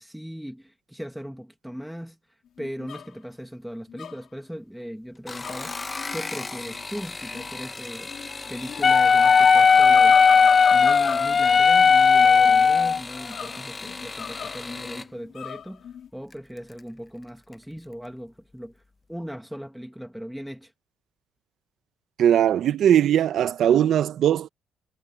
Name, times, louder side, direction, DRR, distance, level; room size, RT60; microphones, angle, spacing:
voice 1, 0.0-2.2 2.6-5.9 6.1-8.1 8.5-10.2 10.7-18.8 19.1-20.7, equal, ahead, 1.7 m, -38 dB
sound 1, 2.6-3.1 3.9-4.2 5.3-6.9 7.3-7.6 8.1-16.1, left 9 dB, 65° left, 1.7 m, -36 dB
sound 2, 5.2-15.1 16.3-16.8 17.2-17.6 17.9-18.0, left 3 dB, 25° left, 1.2 m, -37 dB
Wind instrument woodwind instrument, 8.8-13.0, left 6 dB, 40° left, 0.4 m, -16 dB
voice 2, 22.2-24.5, right 10 dB, 70° right, 1.0 m, -20 dB
cardioid pair, 90°, 0 cm